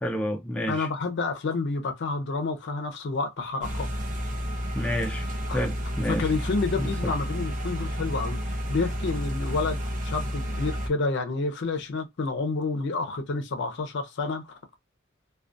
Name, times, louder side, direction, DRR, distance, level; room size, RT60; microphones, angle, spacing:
voice 1, 0.0-0.9 4.7-5.3 5.5-6.3 6.8-7.1, equal, 5° left, 0.3 m, -29 dB
voice 2, 0.7-3.9 5.5-5.6 6.1-14.6, left 3 dB, 60° left, 0.5 m, -29 dB
sound 1, 3.6-10.9, equal, 40° right, 0.6 m, -31 dB
2.3 x 2.2 x 2.5 m
head